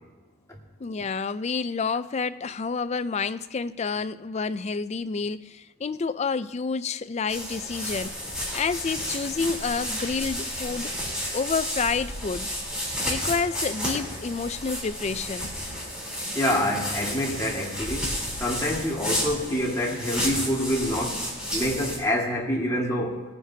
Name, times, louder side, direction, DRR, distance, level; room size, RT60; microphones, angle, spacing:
voice 1, 0.8-8.2 8.5-10.9 11.3-12.5 13.0-15.5, left 5 dB, 30° left, 0.3 m, -29 dB
sound 1, 7.3-22.0, equal, 5° right, 3.7 m, -32 dB
voice 2, 16.3-18.1 18.4-21.2 21.5-23.2, equal, 15° left, 2.0 m, -26 dB
21.0 x 9.7 x 2.8 m
head